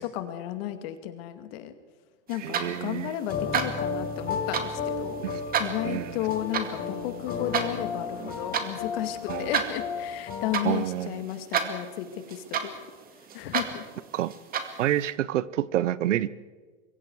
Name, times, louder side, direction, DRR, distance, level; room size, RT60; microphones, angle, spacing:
voice 1, 0.0-1.7 2.3-5.2 5.6-12.7 13.3-13.8, left 12 dB, 50° left, 9 dB, 2.2 m, -33 dB
sound 1, 2.3-15.1, right 7 dB, 25° right, 2.1 m, -34 dB
voice 2, 2.4-3.2 5.2-5.4 5.8-6.2 9.3-9.5 10.6-11.3 14.1-14.3 14.8-16.3, right 12 dB, 80° right, 19 dB, 1.0 m, -28 dB
sound 2, 3.3-10.7, left 5 dB, 25° left, 6.6 m, -33 dB
25.0 x 23.0 x 4.7 m, 1.4 s
hypercardioid pair, 140°, 36 cm